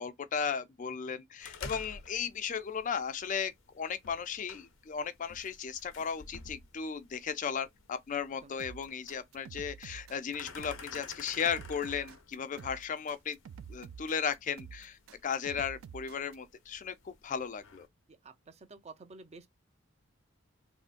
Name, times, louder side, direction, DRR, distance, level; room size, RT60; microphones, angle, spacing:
voice 1, 0.0-13.4 13.7-17.9, left 7 dB, 40° left, 0.4 m, -36 dB
sound 1, 1.4-17.9, left 4 dB, 85° left, 0.7 m, -52 dB
sound 2, 8.6-16.4, right 7 dB, 85° right, 0.3 m, -48 dB
voice 2, 18.1-19.5, right 3 dB, 35° right, 0.5 m, -51 dB
3.7 x 2.1 x 2.4 m
head